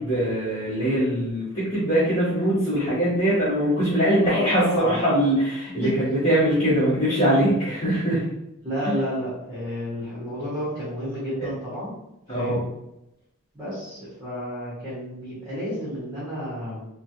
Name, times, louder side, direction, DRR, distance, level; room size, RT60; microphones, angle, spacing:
voice 1, 0.0-8.2 8.8-8.9 11.4-11.5 12.3-12.6, right 1 dB, 25° left, -14 dB, 1.2 m, -22 dB
voice 2, 4.2-5.0 5.8-5.9 8.6-11.9 12.3-12.6 13.5-16.9, equal, 15° right, -11 dB, 1.1 m, -31 dB
3.2 x 2.3 x 2.7 m, 0.85 s
head